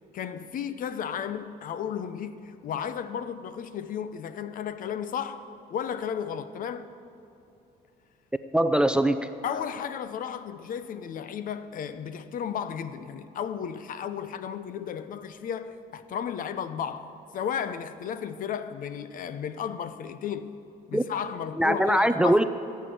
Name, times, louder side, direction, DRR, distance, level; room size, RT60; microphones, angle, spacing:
voice 1, 0.0-5.4 5.7-6.9 9.4-20.6 20.9-22.4, left 8 dB, 55° left, 0.7 m, -34 dB
voice 2, 8.5-9.3 20.9-21.0 21.6-22.4, right 1 dB, 5° right, 0.4 m, -22 dB
15.0 x 8.5 x 7.8 m
cardioid pair, 110°, 17 cm